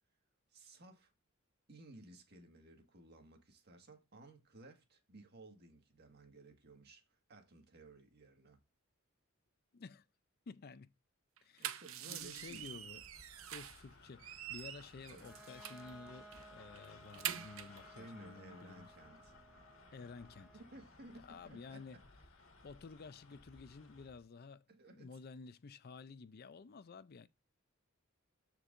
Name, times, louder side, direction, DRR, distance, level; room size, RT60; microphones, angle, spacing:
voice 1, 0.5-1.1 1.7-8.6 11.6-12.7 15.1-15.4 17.8-19.4 20.5-22.1 24.7-25.2, right 2 dB, 55° right, 1.7 m, -57 dB
voice 2, 9.7-10.1 10.5-10.9 11.4-11.7 12.1-13.0 13.5-18.9 19.9-20.5 21.2-22.0 22.6-27.3, left 4 dB, 50° left, 0.5 m, -52 dB
sound 1, 11.4-13.9 14.2-15.9 16.3-16.5 16.8-17.8, right 10 dB, 85° right, 0.7 m, -45 dB
sound 2, 12.2-24.3, left 3 dB, 75° left, 1.7 m, -61 dB
Bowed string instrument, 15.2-20.8, right 2 dB, 5° right, 2.6 m, -59 dB
13.5 x 4.6 x 2.6 m
head